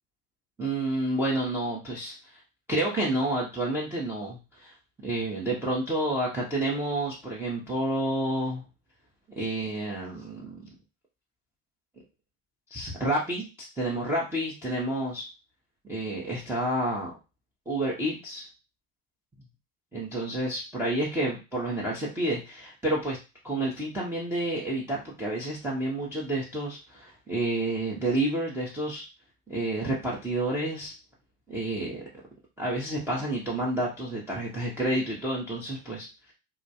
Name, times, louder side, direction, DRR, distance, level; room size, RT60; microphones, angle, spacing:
voice 1, 0.6-2.2 2.7-4.7 5.0-8.6 9.4-10.7 12.7-15.3 15.9-17.1 17.7-18.5 19.9-23.2 23.4-29.0 29.5-30.9 31.5-32.0 32.6-36.1, right 1 dB, 5° right, -6 dB, 0.4 m, -29 dB
2.2 x 2.2 x 2.7 m, 0.28 s
hypercardioid pair, 90°, 45 cm